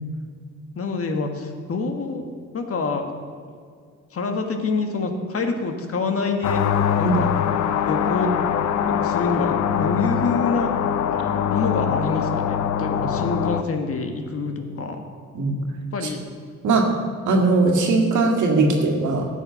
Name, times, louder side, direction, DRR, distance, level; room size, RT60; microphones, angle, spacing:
voice 1, 0.7-3.1 4.1-6.6 7.0-7.3 7.8-8.3 8.9-10.7 11.5-15.0 15.9-16.2, left 3 dB, 50° left, 5 dB, 1.5 m, -26 dB
sound 1, 6.4-13.6, left 9 dB, 70° left, 0.7 m, -23 dB
voice 2, 17.3-19.3, right 3 dB, 75° right, 2 dB, 2.0 m, -19 dB
12.5 x 7.6 x 5.8 m, 2.2 s
cardioid pair, 90°, 30 cm